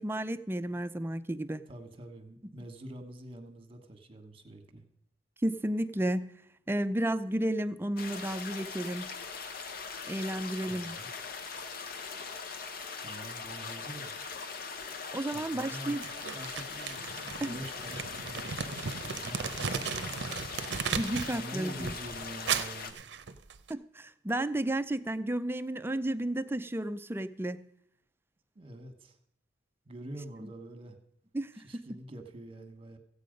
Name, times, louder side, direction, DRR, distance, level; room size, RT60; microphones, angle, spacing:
voice 1, 0.0-1.6 5.4-6.3 6.7-9.1 10.1-11.0 15.1-16.0 17.4-17.6 20.9-21.9 23.7-27.6 30.4-30.5 31.3-31.8, right 1 dB, 15° right, 12 dB, 0.4 m, -32 dB
voice 2, 1.7-4.8 10.7-11.1 13.0-14.2 15.3-20.4 21.3-23.0 28.5-29.2 29.8-31.0 31.6-33.0, right 1 dB, 30° right, 7 dB, 1.3 m, -46 dB
sound 1, 8.0-22.9, left 5 dB, 55° left, 1.0 m, -41 dB
Crumpling crinkling, 16.0-21.4 21.7-23.7, right 6 dB, 70° right, 0.6 m, -36 dB
15.0 x 8.5 x 5.2 m, 0.74 s
head